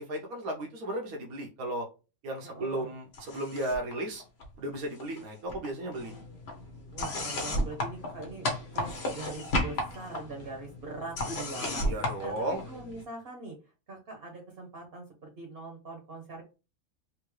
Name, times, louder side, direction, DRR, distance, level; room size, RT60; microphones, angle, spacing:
voice 1, 0.1-1.9 2.2-4.2 4.6-6.2 11.6-12.6, right 1 dB, 80° right, 0 dB, 1.3 m, -35 dB
voice 2, 2.4-2.9 6.9-8.5 8.7-11.8 12.2-13.6 13.9-16.4, right 2 dB, 45° right, 2 dB, 1.0 m, -42 dB
sound 1, 3.1-3.9 4.2-5.2 5.5-13.0, left 1 dB, 50° left, 1.1 m, -34 dB
3.5 x 2.7 x 3.2 m, 0.31 s
omnidirectional pair, 1.5 m